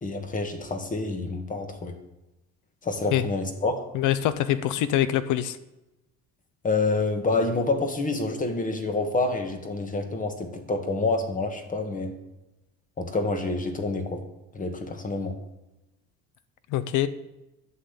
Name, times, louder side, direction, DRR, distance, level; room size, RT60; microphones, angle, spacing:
voice 1, 0.0-2.0 2.8-3.9 6.6-12.1 13.0-14.2 14.5-15.4, left 3 dB, 25° left, 6 dB, 2.1 m, -27 dB
voice 2, 3.9-5.6 16.7-17.1, left 12 dB, 90° left, 14 dB, 0.9 m, -24 dB
11.0 x 8.1 x 8.6 m, 0.97 s
cardioid pair, 135°, 29 cm